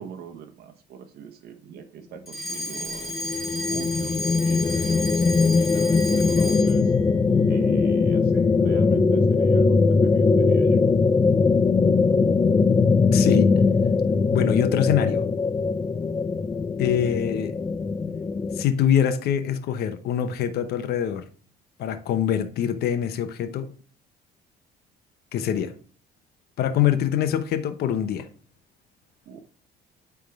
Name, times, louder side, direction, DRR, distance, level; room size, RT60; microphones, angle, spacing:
voice 1, 0.0-3.2 3.7-6.9 7.5-10.8 29.2-29.4, right 7 dB, 70° right, 1.1 m, -41 dB
Alarm, 2.3-6.9, left 1 dB, ahead, 2.5 m, -33 dB
sound 1, 2.8-18.6, left 4 dB, 20° left, 0.4 m, -21 dB
voice 2, 13.1-13.5 14.3-15.2 16.8-17.5 18.5-21.2 21.8-23.7 25.3-25.7 26.6-28.3, left 9 dB, 70° left, 0.9 m, -24 dB
9.1 x 3.6 x 4.7 m
cardioid pair, 110°, 17 cm